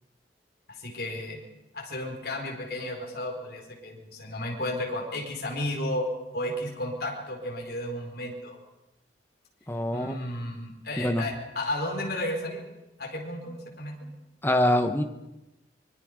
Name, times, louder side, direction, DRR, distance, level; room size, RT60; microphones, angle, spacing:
voice 1, 0.7-1.4 1.7-8.6 9.9-12.6 13.0-14.1, left 1 dB, 55° left, 0 dB, 4.5 m, -33 dB
voice 2, 9.7-10.1 11.0-11.2 14.4-15.0, left 1 dB, 10° left, 7 dB, 1.2 m, -24 dB
24.0 x 22.5 x 5.2 m, 0.94 s
head